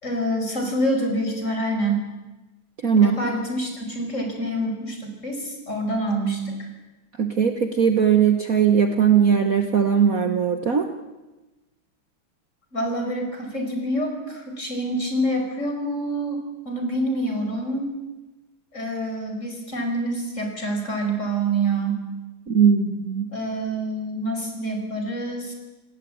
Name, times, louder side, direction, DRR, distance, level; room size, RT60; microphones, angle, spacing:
voice 1, 0.0-2.1 3.0-6.7 12.7-16.4 16.7-17.9 18.7-22.0 23.3-25.5, right 1 dB, 30° left, 3 dB, 5.6 m, -26 dB
voice 2, 2.8-3.2 7.2-10.9 22.5-23.3, right 7 dB, 45° right, 6 dB, 1.5 m, -19 dB
27.5 x 19.0 x 8.8 m, 1.1 s
omnidirectional pair, 2.4 m